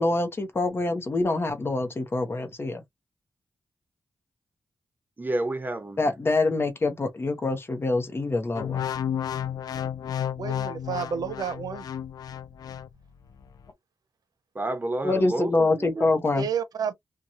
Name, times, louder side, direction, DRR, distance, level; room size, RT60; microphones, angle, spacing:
voice 1, 0.0-2.8 6.0-8.8 15.0-16.5, left 2 dB, 35° left, 0.7 m, -25 dB
voice 2, 5.2-6.2 14.5-16.2, right 2 dB, 30° right, 0.7 m, -30 dB
sound 1, 8.6-12.9 13.4-13.7, left 9 dB, 85° left, 0.4 m, -32 dB
voice 3, 10.4-11.9 16.4-16.9, right 7 dB, 75° right, 0.6 m, -30 dB
2.9 x 2.2 x 2.5 m
cardioid pair, 80°, 7 cm